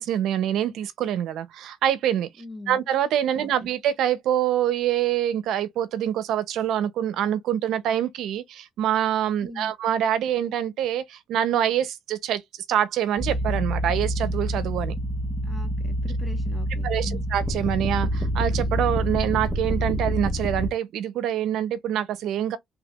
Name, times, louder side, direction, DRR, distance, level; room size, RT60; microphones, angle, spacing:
voice 1, 0.0-2.3 2.7-12.4 12.7-14.9 16.8-22.6, right 10 dB, 85° right, 0.6 m, -25 dB
voice 2, 2.4-2.8 3.3-3.7 9.4-9.7 15.4-17.2, left 2 dB, 5° left, 1.5 m, -41 dB
sound 1, 13.2-20.7, equal, 10° right, 1.1 m, -27 dB
3.5 x 3.2 x 2.4 m
cardioid pair, 90°, 0 cm